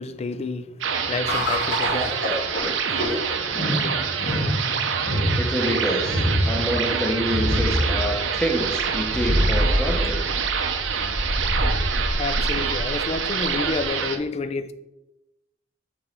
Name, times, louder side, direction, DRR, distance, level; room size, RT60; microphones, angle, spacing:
voice 1, 0.0-3.4 3.8-3.9 12.2-14.7, left 3 dB, 35° left, 0.3 m, -30 dB
sound 1, 0.8-14.2, right 6 dB, 85° right, 0.6 m, -26 dB
sound 2, 1.3-13.9, equal, 65° left, 2.2 m, -26 dB
voice 2, 5.4-10.3, equal, 5° left, 0.9 m, -27 dB
6.0 x 3.1 x 5.2 m
head